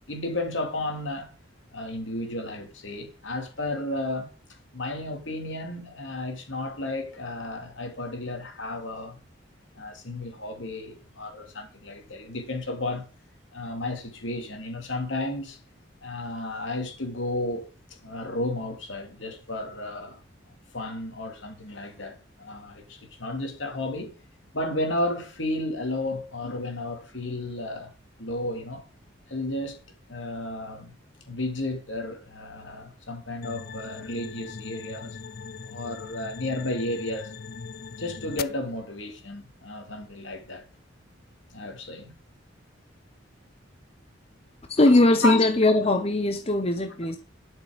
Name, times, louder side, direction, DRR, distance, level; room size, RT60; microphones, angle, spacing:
voice 1, 0.1-1.3 1.7-9.2 9.7-13.1 13.5-15.6 16.0-20.2 20.7-24.1 24.5-27.9 28.2-28.9 29.3-29.8 30.1-30.9 31.3-35.2 35.6-37.3 38.0-40.7 41.5-42.1 45.2-45.4, left 1 dB, 70° left, 2.9 m, -33 dB
sound 1, 33.4-38.4, left 5 dB, 50° left, 0.6 m, -40 dB
voice 2, 44.7-47.2, left 2 dB, 30° left, 0.9 m, -20 dB
12.0 x 6.6 x 5.2 m
head